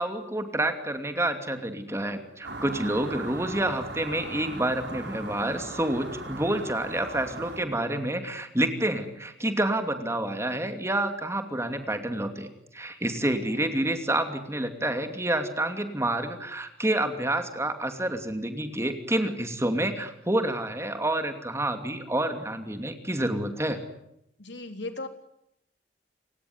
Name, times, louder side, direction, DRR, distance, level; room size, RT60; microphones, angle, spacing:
voice 1, 0.0-12.5 12.7-23.8, right 1 dB, 15° right, 7 dB, 2.7 m, -28 dB
sound 1, 2.4-7.6, right 2 dB, 85° right, 5.3 m, -39 dB
voice 2, 24.4-25.1, left 2 dB, 85° left, 7 dB, 3.4 m, -37 dB
29.0 x 17.0 x 9.7 m, 0.79 s
head